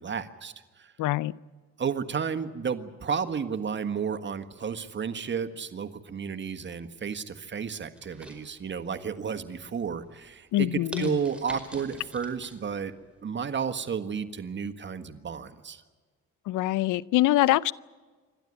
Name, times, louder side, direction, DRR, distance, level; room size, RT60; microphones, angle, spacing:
voice 1, 0.0-0.9 1.8-12.9 13.2-15.8, right 6 dB, 40° right, 8 dB, 1.5 m, -32 dB
voice 2, 1.0-1.3 10.5-11.2 16.5-17.7, left 16 dB, 85° left, 20 dB, 0.6 m, -24 dB
sound 1, 8.0-9.0 9.4-9.8 10.3-10.4 10.9-12.6 13.0-13.1, equal, 5° right, 5.0 m, -43 dB
27.5 x 12.5 x 9.9 m, 1.4 s
cardioid pair, 90°, 30 cm